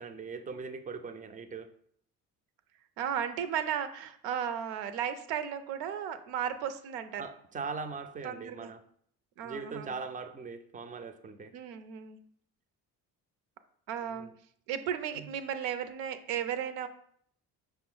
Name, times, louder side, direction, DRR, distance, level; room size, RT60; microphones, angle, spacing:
voice 1, 0.0-1.7 7.2-8.8 9.4-11.5 14.0-14.3 15.1-15.3, right 4 dB, 20° right, 10 dB, 0.4 m, -40 dB
voice 2, 3.0-7.2 8.2-8.7 9.4-10.0 11.5-12.2 13.9-14.3 14.7-16.9, right 8 dB, 75° right, 11 dB, 0.5 m, -35 dB
5.5 x 2.0 x 3.8 m, 0.64 s
hypercardioid pair, 55°, 44 cm